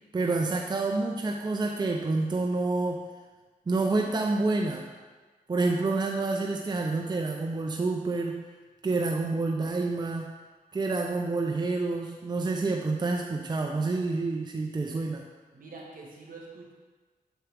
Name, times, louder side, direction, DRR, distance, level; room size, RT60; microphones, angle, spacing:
voice 1, 0.1-3.1 3.7-4.9 5.5-8.4 8.8-10.4 10.7-15.3, right 3 dB, 30° right, 1 dB, 0.5 m, -28 dB
voice 2, 15.5-16.7, right 3 dB, 65° right, -1 dB, 1.4 m, -45 dB
7.0 x 4.4 x 3.4 m, 1.4 s
cardioid pair, 55°, 16 cm